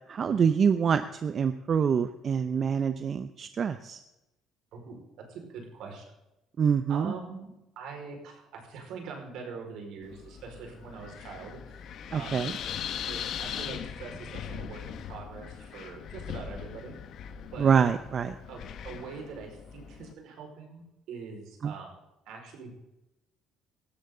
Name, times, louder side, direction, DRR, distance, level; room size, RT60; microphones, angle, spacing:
voice 1, 0.1-4.0 6.6-7.1 12.1-12.5 17.6-18.3 21.6-21.7, right 7 dB, 45° right, 10 dB, 0.7 m, -26 dB
voice 2, 4.7-6.1 6.9-11.8 12.1-12.6 13.1-17.0 17.5-17.7 18.5-22.0 22.3-22.7, right 5 dB, 75° right, 2 dB, 5.1 m, -43 dB
Wind, 10.0-20.1, left 8 dB, 60° left, 1.2 m, -40 dB
18.0 x 14.0 x 3.9 m, 0.93 s
cardioid pair, 95°, 0 cm